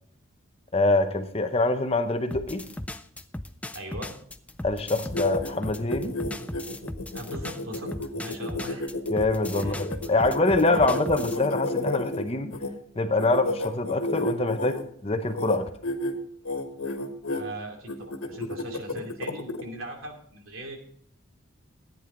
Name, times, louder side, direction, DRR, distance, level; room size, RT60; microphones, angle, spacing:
voice 1, 0.7-2.7 4.6-6.2 9.1-12.5 13.0-15.7, left 2 dB, 25° left, 8 dB, 0.7 m, -25 dB
sound 1, 2.3-11.4, left 1 dB, 5° left, 0.3 m, -37 dB
voice 2, 3.7-4.1 7.1-8.9 9.6-10.3 10.6-11.0 17.3-20.8, right 1 dB, 75° right, 2 dB, 2.7 m, -40 dB
sound 2, 4.9-12.7 13.2-14.8 15.3-15.6 15.8-16.1 16.4-17.4 17.9-19.6, left 2 dB, 85° left, 1.4 m, -31 dB
13.5 x 9.5 x 3.8 m, 0.63 s
head